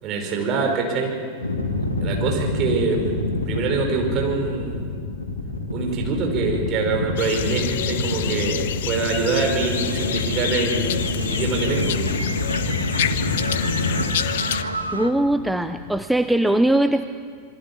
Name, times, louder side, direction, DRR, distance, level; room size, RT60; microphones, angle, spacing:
voice 1, 0.0-1.1 1.8-3.0 3.5-4.9 5.7-12.0, right 4 dB, 35° right, 2 dB, 5.1 m, -25 dB
sound 1, 1.4-16.0, left 2 dB, 80° left, 2.8 m, -27 dB
sound 2, 7.2-14.6, left 10 dB, 55° left, 0.9 m, -28 dB
sound 3, 9.4-15.1, right 1 dB, 85° right, 1.4 m, -32 dB
voice 2, 14.9-17.1, right 1 dB, 5° right, 9 dB, 0.7 m, -20 dB
27.0 x 22.5 x 7.3 m, 2.1 s
figure-of-eight pair, 90°, 0 cm